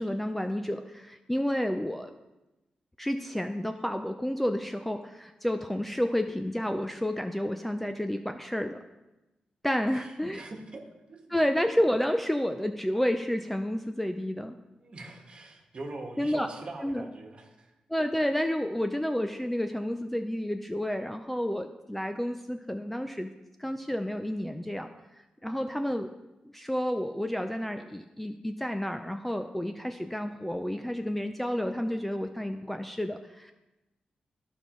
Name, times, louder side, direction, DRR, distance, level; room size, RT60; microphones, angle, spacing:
voice 1, 0.0-2.1 3.0-8.8 9.6-10.4 11.3-14.6 16.2-16.5 16.8-17.0 17.9-23.3 23.6-24.9 25.4-26.1 26.5-33.5, equal, 5° left, 7 dB, 0.4 m, -30 dB
voice 2, 9.9-10.8 11.1-11.4 14.8-17.7, right 2 dB, 45° right, 2 dB, 1.4 m, -43 dB
14.0 x 5.4 x 3.1 m, 1.0 s
cardioid pair, 100°, 3 cm